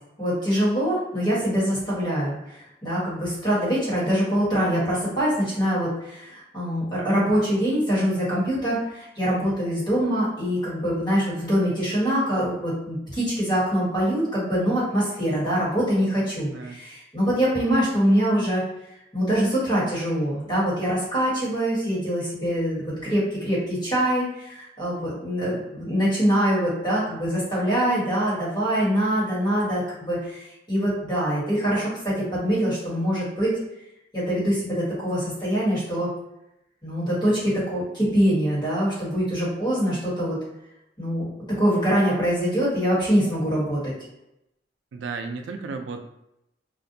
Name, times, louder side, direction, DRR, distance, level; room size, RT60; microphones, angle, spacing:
voice 1, 0.2-18.6 19.1-33.5 34.1-36.1 36.8-40.4 41.0-41.3 41.6-43.9, equal, 25° left, -9 dB, 1.3 m, -24 dB
voice 2, 44.9-46.0, right 4 dB, 80° right, 5 dB, 0.3 m, -34 dB
2.4 x 2.2 x 2.7 m, 0.86 s
head